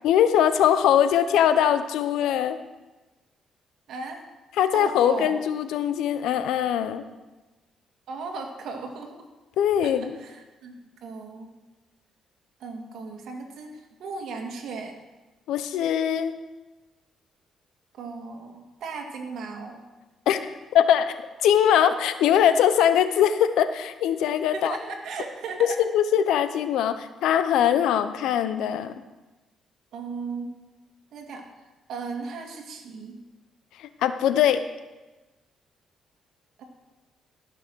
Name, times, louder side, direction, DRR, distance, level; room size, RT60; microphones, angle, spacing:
voice 1, 0.0-2.6 4.6-7.0 9.6-10.2 15.5-16.3 20.3-20.4 20.7-21.1 21.4-24.8 25.9-28.9 33.8-34.6, left 9 dB, 85° left, 11 dB, 0.7 m, -21 dB
voice 2, 3.9-4.3 4.7-5.4 8.1-9.3 9.8-10.7 11.0-11.5 12.6-14.9 17.9-19.8 24.5-25.8 29.9-30.5 31.1-31.5 31.9-33.2 36.6-36.7, right 4 dB, 70° right, 3 dB, 2.0 m, -36 dB
14.0 x 6.2 x 6.3 m, 1.2 s
cardioid pair, 90°, 0 cm